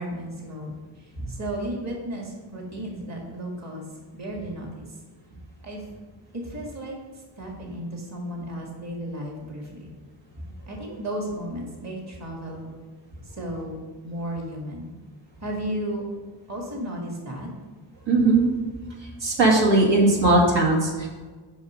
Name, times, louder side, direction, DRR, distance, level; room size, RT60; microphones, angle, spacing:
voice 1, 0.0-3.8 4.1-4.9 5.6-5.8 6.3-6.9 7.4-9.9 10.7-12.7 13.4-14.9 15.4-16.0 16.5-17.5, right 1 dB, 35° right, -1 dB, 1.9 m, -34 dB
voice 2, 18.1-18.5 19.2-21.1, right 2 dB, 75° right, -2 dB, 2.3 m, -19 dB
7.1 x 5.8 x 6.4 m, 1.4 s
wide cardioid pair, 120°, 44 cm